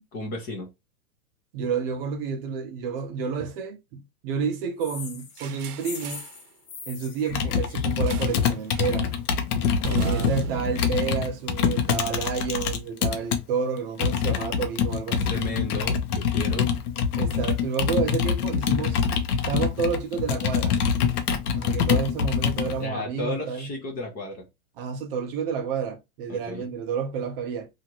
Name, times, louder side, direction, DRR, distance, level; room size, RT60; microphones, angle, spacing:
voice 1, 0.1-0.7 9.8-10.3 15.2-16.7 22.8-24.5 26.3-26.7, left 2 dB, 20° left, 0.5 m, -33 dB
voice 2, 1.5-6.2 6.9-9.2 10.0-15.6 17.2-19.0 19.5-21.1 21.5-23.7 24.8-27.7, right 6 dB, 40° right, 0.6 m, -30 dB
sound 1, 4.8-8.6, left 5 dB, 45° left, 1.0 m, -42 dB
sound 2, 5.4-6.4 8.1-8.5 8.7-9.0 9.8-12.2, right 6 dB, 85° right, 0.6 m, -34 dB
Computer keyboard, 7.3-13.4 14.0-22.8, left 7 dB, 85° left, 0.8 m, -25 dB
2.8 x 2.5 x 2.8 m
hypercardioid pair, 145°, 44 cm